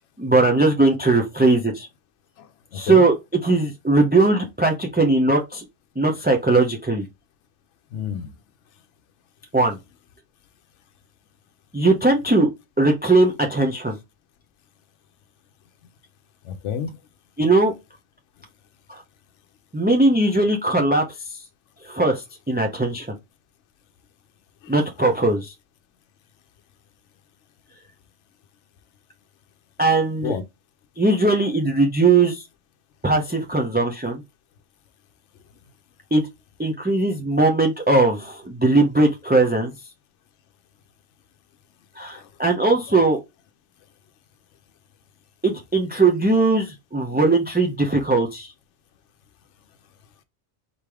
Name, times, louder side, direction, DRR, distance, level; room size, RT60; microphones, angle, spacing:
voice 1, 0.2-1.9 2.7-3.1 3.4-5.6 6.0-7.1 9.5-9.8 11.7-12.5 12.8-14.0 17.4-17.7 18.9-19.0 19.7-21.0 21.3-21.4 21.8-23.1 24.7-25.5 29.8-30.3 31.0-32.4 33.0-34.2 36.1-36.2 36.6-39.7 42.0-43.2 45.4-48.5, right 2 dB, 15° right, 0.4 m, -19 dB
voice 2, 2.4-3.0 7.9-8.3 16.4-17.0 17.4-17.5 24.6-24.7 30.2-30.4 42.1-42.3 42.9-43.0 47.1-47.2, left 7 dB, 80° left, 0.9 m, -31 dB
4.3 x 3.3 x 3.5 m
omnidirectional pair, 1.2 m